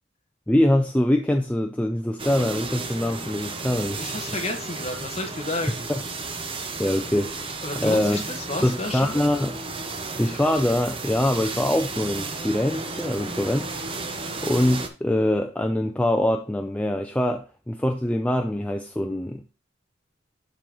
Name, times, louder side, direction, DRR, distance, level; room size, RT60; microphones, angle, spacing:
voice 1, 0.5-4.1 5.9-6.0 6.8-7.3 7.8-8.2 8.6-9.6 10.2-13.7 14.4-19.4, left 1 dB, 5° left, 0.4 m, -23 dB
sound 1, 2.2-14.9, right 3 dB, 25° right, 0.8 m, -33 dB
voice 2, 4.0-5.9 7.6-9.3, left 2 dB, 30° left, 1.4 m, -31 dB
11.5 x 3.9 x 3.0 m
head